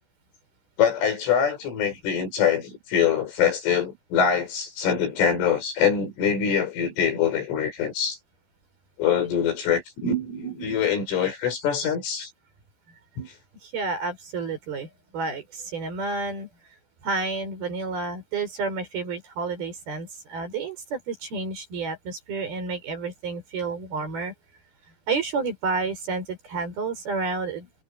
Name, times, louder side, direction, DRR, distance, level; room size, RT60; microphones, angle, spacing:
voice 1, 0.8-8.2 9.0-12.3 13.2-13.3, left 7 dB, 70° left, 8.5 m, -24 dB
voice 2, 13.6-16.5 17.0-24.3 25.1-27.8, right 4 dB, 45° right, 7.3 m, -30 dB
omnidirectional pair, 6.0 m